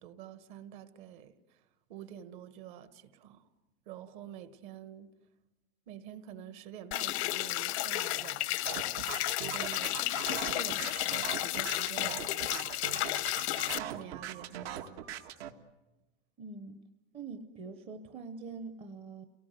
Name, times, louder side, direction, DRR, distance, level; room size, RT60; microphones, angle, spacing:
voice 1, 0.0-3.5 3.9-5.1 5.9-10.0 10.4-13.0 13.5-15.0, right 10 dB, 50° right, 11 dB, 1.7 m, -48 dB
sound 1, 6.9-13.8, left 16 dB, 85° left, 0.9 m, -32 dB
sound 2, 8.7-15.5, right 11 dB, 70° right, 1.8 m, -41 dB
voice 2, 16.4-16.8 17.1-19.2, right 4 dB, 20° right, 7 dB, 0.8 m, -44 dB
29.5 x 18.5 x 9.4 m, 1.1 s
supercardioid pair, 180°, 32 cm